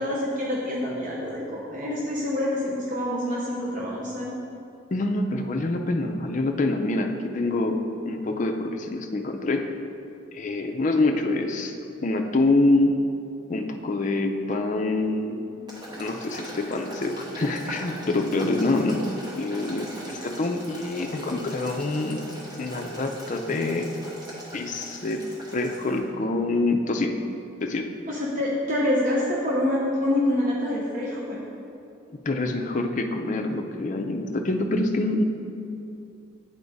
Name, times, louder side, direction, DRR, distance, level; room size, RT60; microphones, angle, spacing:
voice 1, 0.0-4.3 20.1-20.2 28.1-31.4, left 1 dB, 40° right, -4 dB, 0.6 m, -26 dB
voice 2, 4.9-9.6 10.3-11.7 12.0-13.0 13.5-15.5 16.0-19.0 19.4-22.3 22.6-23.9 24.5-25.3 25.5-27.1 27.6-27.9 32.1-35.2, left 2 dB, 40° left, 4 dB, 0.4 m, -26 dB
Boiling, 15.7-26.0, right 1 dB, 20° right, 1.2 m, -40 dB
9.4 x 3.6 x 4.0 m, 2.7 s
head